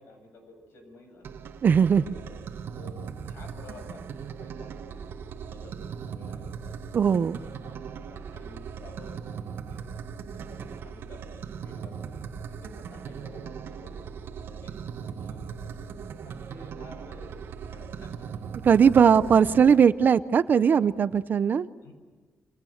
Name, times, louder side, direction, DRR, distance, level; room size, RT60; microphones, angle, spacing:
voice 1, 0.0-1.4 1.7-2.4 2.7-7.1 7.4-9.9 10.2-12.2 12.5-14.0 14.5-14.7 15.0-15.9 16.2-18.7 21.8-21.9, left 2 dB, 70° left, 5 dB, 8.0 m, -51 dB
sound 1, 1.2-19.8, right 6 dB, 65° right, 1.9 m, -39 dB
voice 2, 1.6-2.0 6.9-7.4 18.6-21.7, right 7 dB, 45° right, 15 dB, 0.7 m, -19 dB
28.5 x 27.5 x 6.6 m, 1.4 s
cardioid pair, 140°, 4 cm